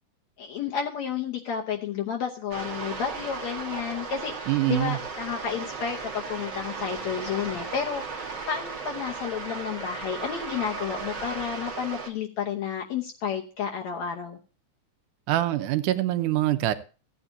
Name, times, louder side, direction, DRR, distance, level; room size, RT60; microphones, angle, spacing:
voice 1, 0.4-14.4, left 7 dB, 70° left, 0 dB, 2.1 m, -31 dB
sound 1, 2.5-12.1, right 5 dB, 40° right, 2.0 m, -36 dB
voice 2, 4.5-5.0 15.3-16.7, right 14 dB, 85° right, 10 dB, 2.3 m, -24 dB
16.0 x 9.1 x 2.7 m, 0.34 s
omnidirectional pair, 3.6 m